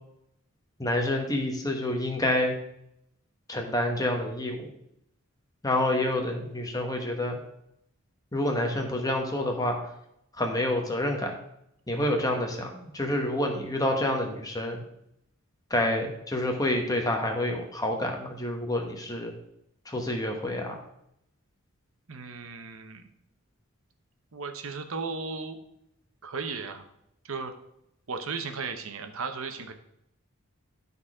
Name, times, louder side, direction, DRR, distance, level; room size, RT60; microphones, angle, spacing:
voice 1, 0.8-2.6 3.5-4.7 5.6-7.4 8.3-9.8 10.4-11.3 11.9-14.8 15.7-19.3 19.9-20.8, left 1 dB, 15° left, 3 dB, 1.1 m, -28 dB
voice 2, 22.1-23.1 24.3-25.6 26.2-26.8 27.2-27.5 28.1-29.7, right 4 dB, 70° right, 7 dB, 0.9 m, -35 dB
11.0 x 4.1 x 4.8 m, 0.77 s
head